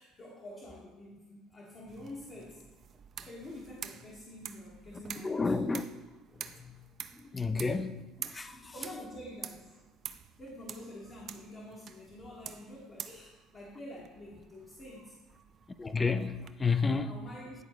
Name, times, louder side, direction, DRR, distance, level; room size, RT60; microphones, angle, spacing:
voice 1, 0.0-2.6 3.2-5.4 8.4-9.8 10.4-15.2 17.0-17.5, left 1 dB, 40° left, 1.4 m, -47 dB
sound 1, 1.9-16.5, right 8 dB, 45° right, 0.4 m, -48 dB
voice 2, 5.2-5.8 6.3-6.8 7.1-8.5 15.8-17.1, left 4 dB, 20° left, 0.4 m, -31 dB
10.5 x 3.9 x 3.1 m
supercardioid pair, 90°, 0 cm